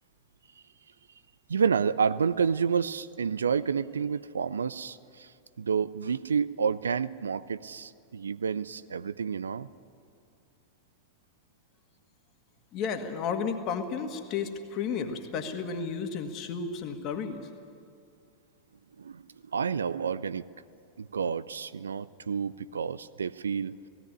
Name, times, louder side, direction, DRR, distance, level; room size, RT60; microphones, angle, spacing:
voice 1, 1.5-5.3 5.6-9.7 19.0-19.2 19.5-20.4 21.0-23.7, right 6 dB, 70° right, 17 dB, 0.4 m, -29 dB
voice 2, 12.7-17.5, left 6 dB, 35° left, 5 dB, 1.9 m, -33 dB
17.5 x 17.0 x 9.7 m, 2.5 s
figure-of-eight pair, 90°, 0 cm